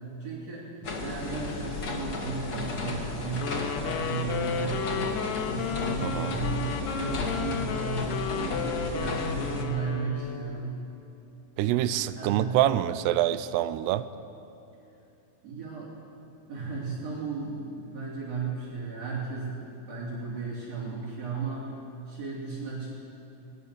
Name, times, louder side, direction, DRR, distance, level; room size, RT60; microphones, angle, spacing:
voice 1, 0.2-0.6 1.0-5.1 5.4-10.8 11.6-12.6 15.4-16.1 16.5-21.7 22.1-22.9, right 4 dB, 40° right, -6 dB, 4.0 m, -35 dB
sound 1, 0.8-9.6, left 3 dB, 45° left, 1.2 m, -34 dB
Wind instrument woodwind instrument, 3.3-10.6, left 7 dB, 85° left, 3.3 m, -33 dB
voice 2, 6.0-6.4 11.6-14.1, right 13 dB, 90° right, 14 dB, 2.8 m, -26 dB
22.0 x 19.0 x 6.9 m, 2.8 s
omnidirectional pair, 4.7 m